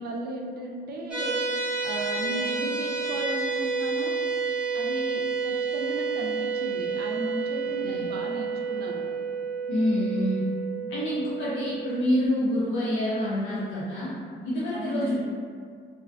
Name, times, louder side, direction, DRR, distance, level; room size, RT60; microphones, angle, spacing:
voice 1, 0.0-1.4 1.8-4.2 4.7-9.0 14.7-15.2, right 2 dB, 55° right, 0 dB, 0.4 m, -35 dB
sound 1, 1.1-12.3, right 4 dB, 5° right, 0.6 m, -30 dB
voice 2, 9.7-10.4 10.9-14.1 14.4-15.2, left 1 dB, 75° left, -7 dB, 0.5 m, -27 dB
2.4 x 2.2 x 2.4 m, 2.1 s
cardioid pair, 90°, 20 cm